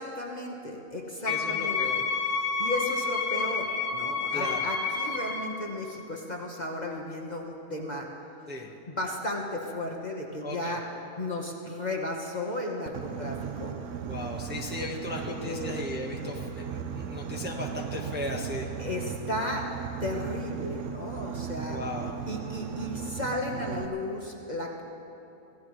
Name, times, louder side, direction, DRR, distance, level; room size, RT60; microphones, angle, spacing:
voice 1, 0.0-2.0 2.3-8.1 8.9-10.8 11.2-13.8 15.1-15.7 18.8-19.7 20.0-21.8 22.3-24.8, left 1 dB, 30° left, -1 dB, 1.2 m, -34 dB
Wind instrument woodwind instrument, 1.3-5.5, left 5 dB, 85° left, 1.9 m, -29 dB
voice 2, 1.3-2.0 4.3-4.6 8.5-8.7 10.4-10.8 14.0-18.7 21.7-22.1, left 2 dB, 10° right, -1 dB, 1.0 m, -36 dB
Boat Water vehicle, 12.9-23.9, right 7 dB, 60° right, 0.9 m, -36 dB
25.5 x 16.0 x 3.2 m, 3.0 s
omnidirectional pair, 1.6 m